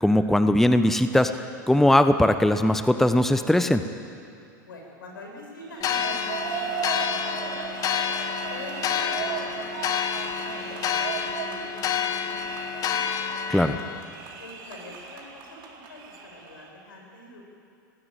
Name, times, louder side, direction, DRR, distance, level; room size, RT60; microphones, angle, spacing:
voice 1, 0.0-3.8 13.5-13.8, left 1 dB, 5° left, 9 dB, 0.9 m, -20 dB
voice 2, 4.6-7.4 8.5-13.3 14.4-17.4, left 2 dB, 80° left, 1 dB, 6.7 m, -45 dB
sound 1, 5.6-16.7, right 6 dB, 45° right, 3.9 m, -36 dB
sound 2, 5.8-14.0, left 7 dB, 35° left, 1.5 m, -29 dB
20.5 x 16.0 x 9.2 m, 2.5 s
hypercardioid pair, 100°, 11 cm